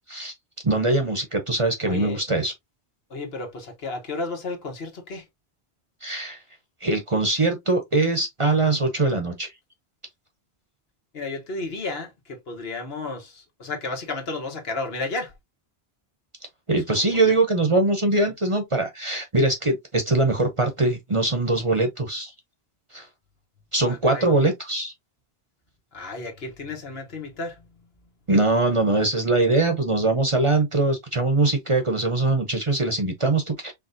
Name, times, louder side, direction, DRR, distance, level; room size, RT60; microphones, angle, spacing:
voice 1, 0.6-2.5 6.0-6.4 6.8-9.5 16.7-22.3 22.9-23.1 23.7-24.9 28.3-33.7, right 2 dB, 30° right, 0.9 m, -22 dB
voice 2, 1.8-2.2 3.1-5.2 11.1-15.3 17.0-17.3 18.2-18.3 23.9-24.2 25.9-27.6, left 3 dB, 65° left, 1.4 m, -33 dB
4.7 x 3.4 x 2.6 m
omnidirectional pair, 1.1 m